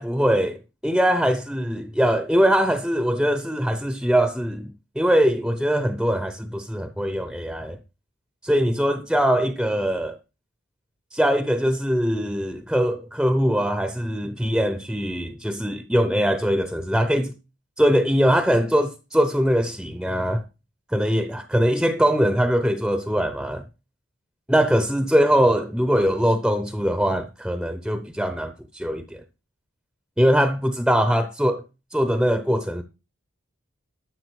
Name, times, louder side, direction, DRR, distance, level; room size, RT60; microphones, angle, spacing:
voice 1, 0.0-7.8 8.4-10.2 11.1-17.3 17.8-20.4 20.9-23.6 24.5-29.2 30.2-31.6 31.9-32.8, equal, 5° right, 0.6 m, -22 dB
12.5 x 6.9 x 4.7 m
head